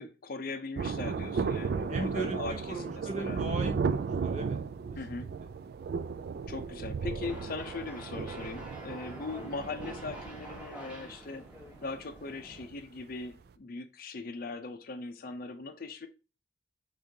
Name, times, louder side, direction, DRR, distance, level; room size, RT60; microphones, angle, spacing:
voice 1, 0.0-2.8 3.1-3.4 4.9-5.3 6.5-11.4 11.8-16.1, left 3 dB, 50° left, 0.5 m, -40 dB
Thunder, 0.8-12.8 13.0-13.1, right 5 dB, 55° right, 0.3 m, -35 dB
voice 2, 1.9-4.6 5.1-5.3, right 2 dB, 40° right, 0.9 m, -38 dB
sound 1, 7.2-12.7, right 1 dB, 5° right, 1.2 m, -47 dB
5.1 x 3.6 x 2.8 m
head